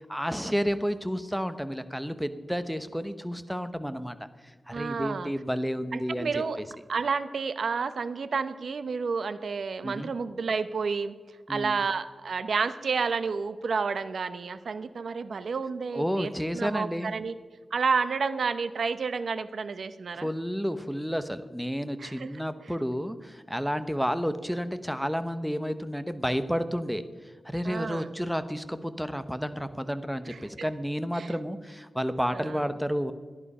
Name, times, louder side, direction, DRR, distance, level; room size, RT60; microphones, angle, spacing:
voice 1, 0.0-4.2 4.7-6.3 9.8-10.1 11.5-11.8 15.9-17.1 20.1-27.0 27.4-33.1, equal, ahead, 11 dB, 0.9 m, -31 dB
voice 2, 4.7-5.3 5.9-6.6 6.9-11.1 11.5-17.3 17.7-20.3 22.0-22.3 27.6-28.1 30.3-30.4 31.1-31.3 32.3-32.6, right 5 dB, 75° right, 13 dB, 0.8 m, -30 dB
14.0 x 11.0 x 5.5 m, 1.4 s
cardioid pair, 70°, 0 cm